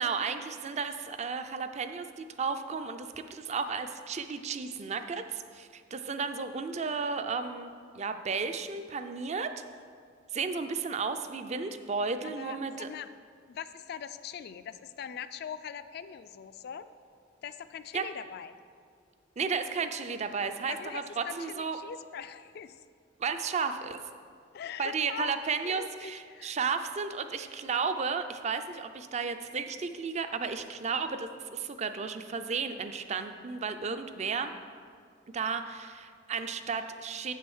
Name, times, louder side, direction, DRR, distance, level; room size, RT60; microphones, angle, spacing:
voice 1, 0.0-9.5 10.3-12.9 17.9-18.1 19.4-21.8 23.2-24.0 24.8-34.5 35.3-37.3, right 5 dB, 35° right, 9 dB, 0.4 m, -33 dB
voice 2, 12.2-13.1 13.5-16.8 17.4-18.5 20.6-22.8 24.5-26.6, left 8 dB, 55° left, 12 dB, 0.3 m, -42 dB
7.6 x 6.4 x 5.5 m, 2.1 s
head